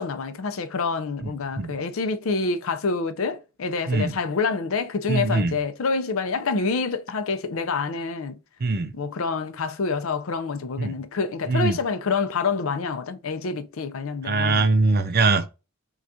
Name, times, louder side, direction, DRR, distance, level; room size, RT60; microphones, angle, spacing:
voice 1, 0.0-8.4 8.9-14.7, left 4 dB, 75° left, 0.5 m, -27 dB
voice 2, 1.2-1.7 3.9-4.2 5.1-5.6 8.6-8.9 10.8-11.0 11.5-11.8 14.2-15.5, right 3 dB, 45° right, 0.5 m, -22 dB
6.1 x 2.4 x 2.7 m
head